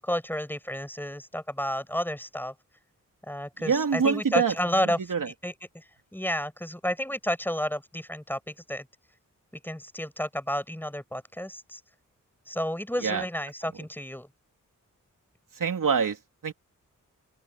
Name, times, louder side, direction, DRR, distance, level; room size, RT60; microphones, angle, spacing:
voice 1, 0.0-2.5 3.3-5.0 5.4-5.8 6.1-8.9 9.6-11.8 12.5-14.3, equal, 5° left, 7.7 m, -31 dB
voice 2, 3.6-4.5 4.8-5.3 13.0-13.2 15.5-16.2 16.4-16.5, right 6 dB, 75° right, 3.4 m, -25 dB
open air
cardioid pair, 55°, 32 cm